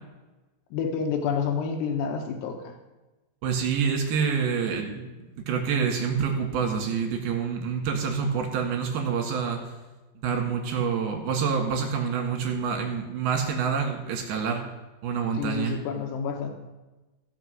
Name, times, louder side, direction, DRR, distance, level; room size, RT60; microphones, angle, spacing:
voice 1, 0.7-2.7 15.3-16.5, left 6 dB, 85° left, 5 dB, 3.1 m, -29 dB
voice 2, 3.4-5.2 5.5-9.6 10.2-14.6 15.0-15.8, right 6 dB, 75° right, 2 dB, 3.6 m, -27 dB
16.0 x 5.8 x 6.4 m, 1.1 s
omnidirectional pair, 4.8 m